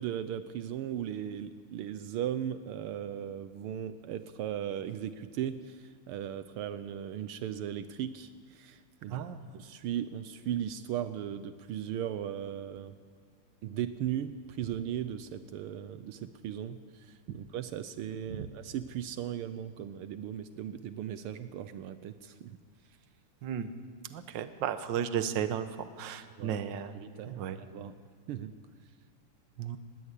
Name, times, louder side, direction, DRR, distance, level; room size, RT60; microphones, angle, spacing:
voice 1, 0.0-9.2 9.5-12.9 13.6-22.6 26.4-26.6 26.9-28.0 28.3-28.5, right 10 dB, 80° right, 11 dB, 1.6 m, -37 dB
voice 2, 24.1-27.0 27.3-27.6 29.6-29.8, right 9 dB, 60° right, 10 dB, 1.6 m, -34 dB
20.5 x 18.5 x 8.3 m, 2.1 s
omnidirectional pair, 2.4 m